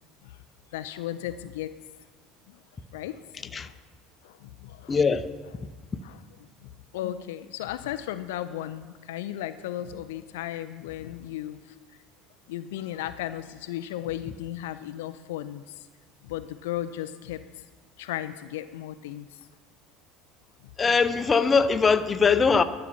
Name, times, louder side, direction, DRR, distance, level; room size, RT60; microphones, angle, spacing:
voice 1, 0.7-1.7 2.5-2.6 2.9-3.2 3.6-3.7 4.2-5.0 6.0-6.2 6.6-11.8 12.5-15.9 16.2-17.6 18.0-19.4, left 12 dB, 70° left, 0.3 m, -35 dB
voice 2, 4.9-5.3 20.8-22.6, left 5 dB, 25° left, 0.6 m, -21 dB
12.0 x 5.8 x 7.1 m
figure-of-eight pair, 70°, 0 cm